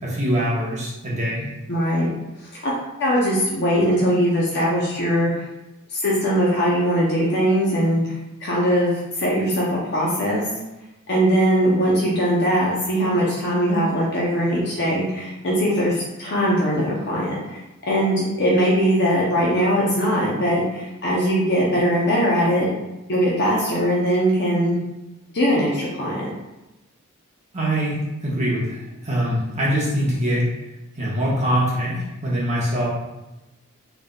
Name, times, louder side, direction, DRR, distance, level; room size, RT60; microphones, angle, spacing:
voice 1, 0.0-1.5 27.5-30.5 30.9-32.9, equal, 30° right, -6 dB, 1.0 m, -23 dB
voice 2, 1.7-2.1 2.4-2.7 3.0-5.5 5.9-8.1 8.4-8.9 9.2-10.4 11.1-17.6 17.9-22.7 23.1-24.8 25.3-26.3, equal, 50° left, -5 dB, 0.6 m, -20 dB
3.8 x 3.4 x 2.3 m, 0.97 s
head